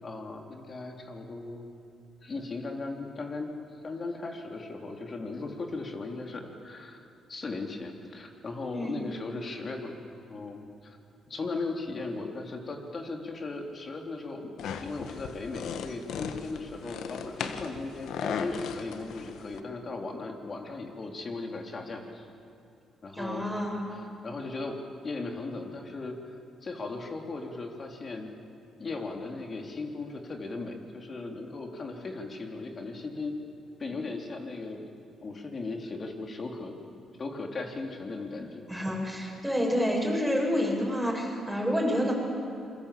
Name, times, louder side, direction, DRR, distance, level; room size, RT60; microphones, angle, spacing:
voice 1, 0.0-1.7 2.2-3.5 3.8-7.0 7.3-11.0 11.3-22.3 23.0-23.5 23.9-24.8 25.0-28.3 28.8-33.3 33.8-34.9 35.2-36.8 37.2-38.7, left 3 dB, 40° left, 3 dB, 3.6 m, -37 dB
sound 1, 14.6-19.6, left 7 dB, 80° left, 1.5 m, -37 dB
voice 2, 23.1-23.8 38.7-42.1, equal, ahead, -2 dB, 8.0 m, -28 dB
27.5 x 23.0 x 8.6 m, 2.5 s
cardioid pair, 90°, 0 cm